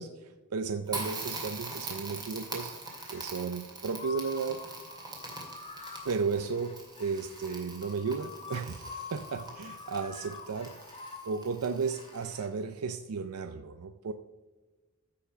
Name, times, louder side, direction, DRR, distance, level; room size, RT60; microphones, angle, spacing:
voice 1, 0.0-2.7 3.1-4.6 6.0-10.7 11.3-14.1, right 5 dB, 85° right, 9 dB, 0.5 m, -34 dB
Crackle, 0.9-12.4, right 3 dB, 20° right, 2.3 m, -43 dB
sound 1, 2.8-3.4 3.9-12.5, left 5 dB, 25° left, 1.1 m, -47 dB
14.5 x 5.8 x 5.1 m, 1.3 s
head